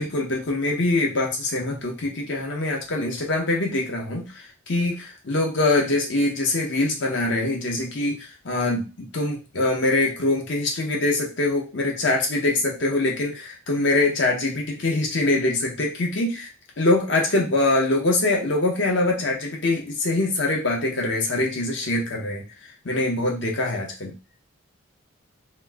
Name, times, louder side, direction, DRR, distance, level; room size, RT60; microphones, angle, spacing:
voice 1, 0.0-16.5 16.8-22.4 22.8-24.1, left 2 dB, 60° left, 0 dB, 0.8 m, -24 dB
2.9 x 2.1 x 3.4 m, 0.30 s
head